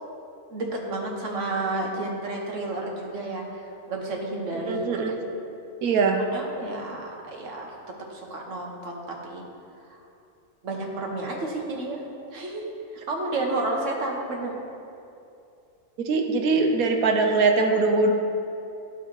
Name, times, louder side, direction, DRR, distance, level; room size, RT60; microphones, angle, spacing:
voice 1, 0.5-3.6 3.9-4.9 6.2-7.7 8.1-9.4 9.9-10.0 10.6-12.0 12.3-12.7 13.1-14.6, right 2 dB, 60° right, 0 dB, 1.4 m, -31 dB
voice 2, 4.7-5.1 5.8-6.2 16.1-18.1, right 3 dB, 75° right, 3 dB, 1.2 m, -21 dB
11.0 x 4.0 x 4.6 m, 2.7 s
omnidirectional pair, 1.5 m